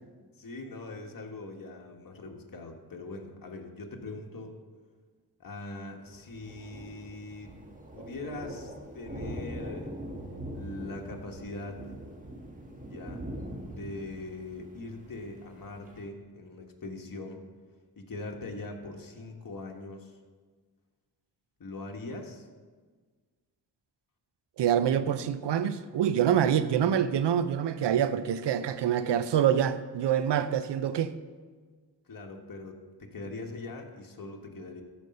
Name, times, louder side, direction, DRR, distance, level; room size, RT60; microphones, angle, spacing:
voice 1, 0.4-4.6 5.4-7.6 7.9-10.0 10.5-11.8 12.9-13.3 13.7-17.4 18.0-20.1 21.6-22.5 32.1-34.8, left 2 dB, 55° left, 1.5 m, -41 dB
Thunder, 6.1-16.0, right 1 dB, 20° right, 1.6 m, -42 dB
voice 2, 24.6-31.1, right 9 dB, 85° right, 0.6 m, -26 dB
14.0 x 5.3 x 5.3 m
cardioid pair, 60°, 41 cm